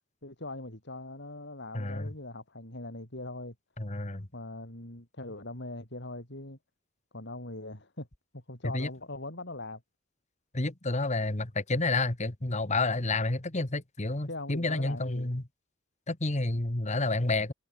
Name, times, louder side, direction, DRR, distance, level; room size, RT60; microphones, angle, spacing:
voice 1, 0.2-3.5 4.3-6.6 7.1-8.1 8.3-9.8 14.3-15.3, left 2 dB, 60° left, 6.5 m, -41 dB
voice 2, 1.7-2.1 3.8-4.3 8.6-8.9 10.5-15.4 16.1-17.5, left 2 dB, 35° left, 1.7 m, -30 dB
head